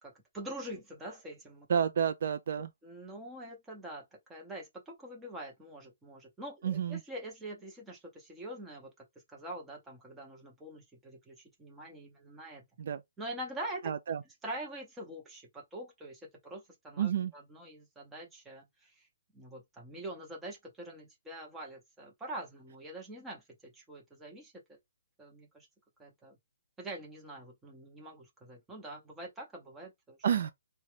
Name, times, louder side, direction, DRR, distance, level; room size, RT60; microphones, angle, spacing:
voice 1, 0.0-1.7 2.5-4.0 4.3-12.7 13.2-13.9 14.4-19.1 19.3-24.5 25.2-25.7 26.0-26.4 26.8-30.2, right 1 dB, 5° right, 0.7 m, -45 dB
voice 2, 1.7-2.7 6.6-7.0 12.8-13.0 13.8-14.2 17.0-17.3 30.2-30.5, right 8 dB, 50° right, 0.3 m, -30 dB
3.8 x 2.2 x 3.2 m
hypercardioid pair, 170°, 0 cm